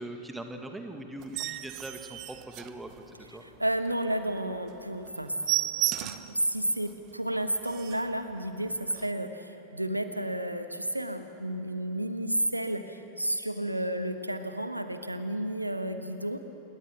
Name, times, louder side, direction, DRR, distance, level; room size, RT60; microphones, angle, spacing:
voice 1, 0.0-3.4, right 1 dB, 5° right, 5 dB, 1.8 m, -41 dB
sound 1, 1.2-3.3 3.8-3.9 4.3-4.4 4.7-4.8 5.1-6.4 6.9-7.0 7.3-7.4 7.6-8.2 8.9-9.1, right 16 dB, 40° right, 0.7 m, -33 dB
voice 2, 3.6-16.4, right 1 dB, 85° right, 8 dB, 1.3 m, -32 dB
28.0 x 21.5 x 6.2 m, 2.9 s
figure-of-eight pair, 90°, 0 cm